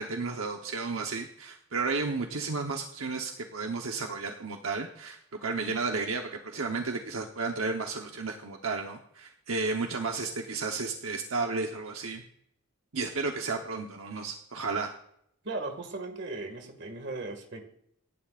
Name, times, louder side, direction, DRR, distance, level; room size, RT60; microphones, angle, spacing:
voice 1, 0.0-12.2 12.9-14.9, right 4 dB, 80° right, 3 dB, 1.1 m, -33 dB
voice 2, 15.4-17.7, right 2 dB, 55° right, 4 dB, 2.1 m, -37 dB
26.5 x 11.0 x 2.5 m, 0.73 s
head